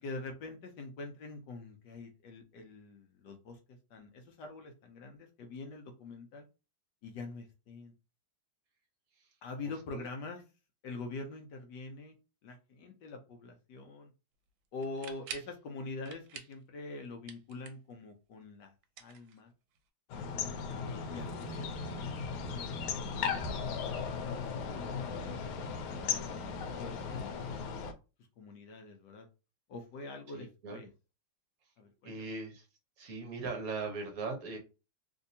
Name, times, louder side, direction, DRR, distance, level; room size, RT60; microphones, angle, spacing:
voice 1, 0.0-6.5 7.0-7.9 9.4-10.4 10.8-12.2 12.4-14.1 14.7-18.7 19.0-19.5 20.7-22.3 22.8-23.1 23.4-23.9 24.3-25.7 26.1-27.4 28.4-29.3 29.7-30.9 31.8-32.3, left 3 dB, 70° left, 4 dB, 1.1 m, -45 dB
voice 2, 9.6-10.0 30.3-30.8 32.0-32.6 33.0-34.6, right 3 dB, 55° right, 2 dB, 1.1 m, -39 dB
sound 1, 14.8-15.6 16.0-16.6 16.9-18.0 18.8-19.8, right 8 dB, 75° right, 1.3 m, -47 dB
sound 2, 20.1-27.9, left 5 dB, 85° left, 1.5 m, -37 dB
3.3 x 2.7 x 2.6 m, 0.30 s
omnidirectional pair, 2.3 m